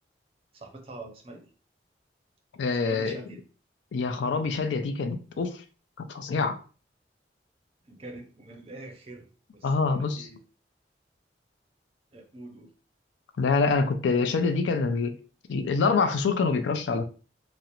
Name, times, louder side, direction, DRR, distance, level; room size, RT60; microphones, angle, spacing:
voice 1, 0.5-1.5 2.8-3.4 7.8-9.3 9.5-10.4 12.1-12.7, right 2 dB, 30° right, 0.5 m, -44 dB
voice 2, 2.6-3.2 3.9-5.6 6.0-6.6 9.6-10.3 13.4-15.2 15.5-17.0, left 4 dB, 85° left, 0.4 m, -26 dB
2.4 x 2.0 x 2.8 m
head